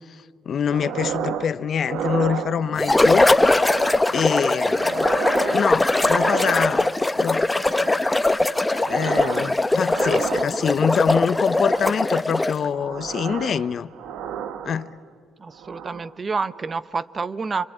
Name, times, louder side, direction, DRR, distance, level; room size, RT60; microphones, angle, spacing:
voice 1, 0.5-3.3 4.1-5.1 5.5-6.9 7.2-7.5 8.9-13.9 14.6-14.9, left 7 dB, 55° left, 0.6 m, -25 dB
sound 1, 0.7-1.5 1.8-3.0 3.5-4.2 4.5-7.1 7.5-8.2 8.5-9.5 9.8-10.9 11.5-12.1 12.6-15.1 15.5-16.1 16.5-16.8, right 9 dB, 85° right, 0.9 m, -33 dB
sound 2, 2.8-12.7, left 2 dB, 15° left, 0.8 m, -20 dB
voice 2, 15.4-17.7, right 4 dB, 35° right, 0.7 m, -28 dB
26.0 x 23.0 x 8.8 m
cardioid pair, 90°, 0 cm